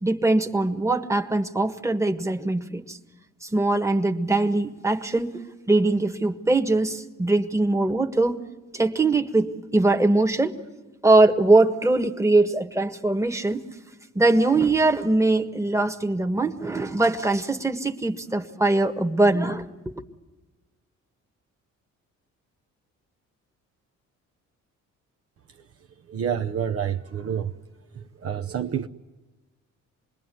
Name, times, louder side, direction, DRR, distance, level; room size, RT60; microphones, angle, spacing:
voice 1, 0.0-3.0 3.4-8.4 8.7-10.6 11.0-13.7 14.1-19.6, right 2 dB, 10° right, 1.5 m, -22 dB
voice 2, 26.0-27.6 27.9-28.9, right 8 dB, 50° right, 0.9 m, -29 dB
27.5 x 21.0 x 9.3 m
cardioid pair, 90°, 30 cm